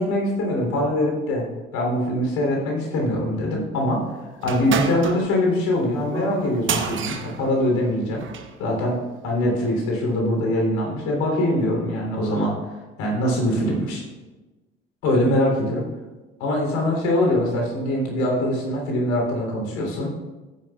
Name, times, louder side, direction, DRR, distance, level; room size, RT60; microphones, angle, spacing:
voice 1, 0.0-1.5 1.7-4.1 4.4-8.2 8.6-12.5 13.0-14.0 15.0-15.9 16.4-20.1, left 1 dB, 65° left, 0 dB, 3.3 m, -23 dB
sound 1, 4.4-8.6, right 6 dB, 40° right, 1.0 m, -30 dB
15.5 x 9.8 x 2.4 m, 1.2 s
figure-of-eight pair, 55°, 31 cm